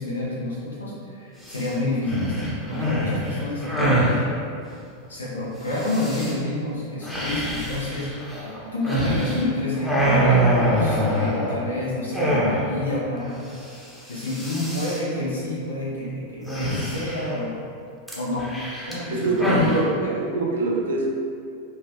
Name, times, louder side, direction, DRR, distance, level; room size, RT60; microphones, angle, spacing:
voice 1, 0.0-4.3 5.1-8.2 8.7-13.5 14.1-17.5 18.1-18.5 18.9-19.7 20.0-20.1, left 2 dB, 75° left, -6 dB, 0.9 m, -28 dB
sound 1, 1.4-1.7 2.0-4.2 5.7-6.3 7.0-9.5 9.8-11.7 12.1-12.9 13.2-13.3 13.5-13.8 14.1-15.0 16.5-17.4 18.1-19.8, right 1 dB, 5° left, 0.8 m, -24 dB
voice 2, 19.1-21.1, right 2 dB, 65° right, -1 dB, 0.6 m, -24 dB
4.4 x 2.4 x 2.9 m, 2.4 s
figure-of-eight pair, 90°, 0 cm